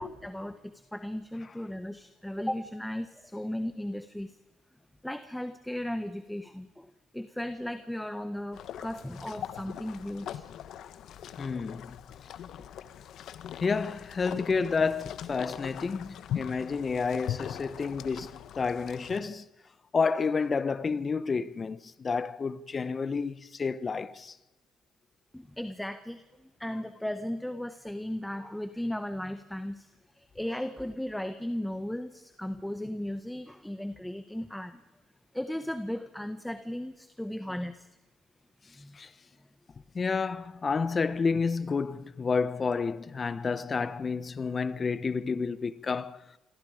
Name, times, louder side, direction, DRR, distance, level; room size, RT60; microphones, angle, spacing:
voice 1, 0.0-4.4 5.0-6.9 7.1-10.5 25.3-29.9 30.2-34.8 35.3-37.9 38.8-39.0, left 1 dB, 5° left, 1.5 m, -36 dB
sound 1, 8.5-19.2, left 10 dB, 65° left, 1.2 m, -41 dB
voice 2, 11.4-12.0 13.6-19.5 19.9-24.3 39.0-39.1 39.9-46.2, left 5 dB, 40° left, 1.2 m, -30 dB
27.5 x 23.0 x 5.2 m
supercardioid pair, 60°, 0 cm